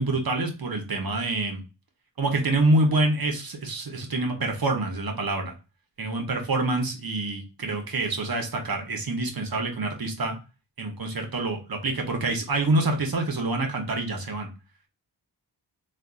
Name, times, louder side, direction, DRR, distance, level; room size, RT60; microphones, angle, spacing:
voice 1, 0.0-1.6 2.2-5.5 6.0-10.4 10.8-14.5, right 2 dB, 55° right, 3 dB, 1.0 m, -26 dB
3.4 x 2.5 x 2.4 m, 0.31 s
cardioid pair, 40°, 44 cm